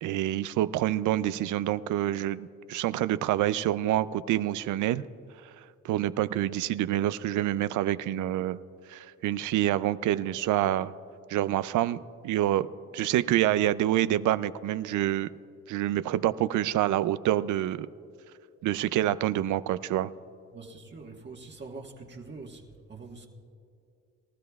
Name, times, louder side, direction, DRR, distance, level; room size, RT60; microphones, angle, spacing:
voice 1, 0.0-5.1 5.8-8.6 8.9-10.9 11.3-12.0 12.2-12.7 12.9-15.3 15.7-17.9 18.6-20.1, right 13 dB, 80° right, 15 dB, 0.5 m, -27 dB
voice 2, 20.5-23.3, right 3 dB, 35° right, 0 dB, 1.4 m, -44 dB
24.5 x 13.0 x 2.3 m, 2.6 s
cardioid pair, 90°, 30 cm